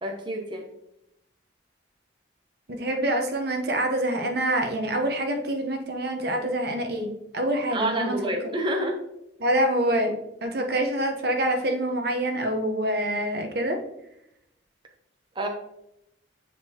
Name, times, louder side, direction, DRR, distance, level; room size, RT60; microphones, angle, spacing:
voice 1, 0.0-0.7 7.7-9.0 15.4-15.5, right 1 dB, 25° right, 3 dB, 0.7 m, -28 dB
voice 2, 2.7-8.1 9.4-10.1 10.4-13.8, right 1 dB, 55° right, 3 dB, 0.9 m, -26 dB
9.3 x 3.8 x 2.9 m, 0.83 s
head